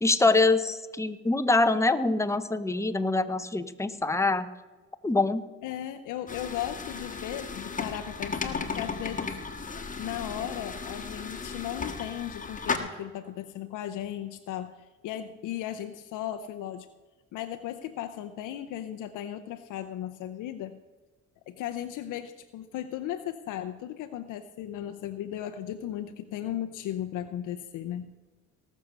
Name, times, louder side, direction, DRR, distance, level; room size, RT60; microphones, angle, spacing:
voice 1, 0.0-4.5 5.0-5.4, left 3 dB, 10° left, 10 dB, 0.8 m, -24 dB
voice 2, 5.6-9.4 10.0-16.9 17.3-20.8 21.5-28.1, left 11 dB, 85° left, 7 dB, 0.7 m, -36 dB
sound 1, 6.3-12.8, left 4 dB, 25° left, 1.6 m, -35 dB
18.0 x 6.4 x 6.6 m, 1.3 s
cardioid pair, 90°, 30 cm